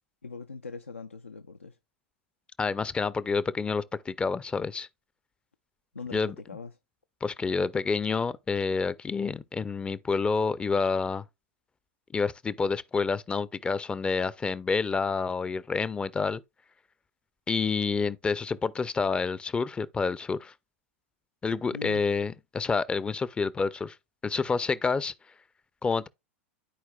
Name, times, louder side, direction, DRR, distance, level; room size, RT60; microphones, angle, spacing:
voice 1, 0.2-1.8 5.9-6.7 21.7-22.0, left 4 dB, 85° left, 0.4 m, -41 dB
voice 2, 2.6-4.9 6.1-6.4 7.2-11.2 12.1-16.4 17.5-20.5 21.4-24.0 24.2-25.1 25.8-26.1, left 4 dB, 15° left, 0.4 m, -28 dB
13.0 x 4.6 x 2.3 m
figure-of-eight pair, 90°, 7 cm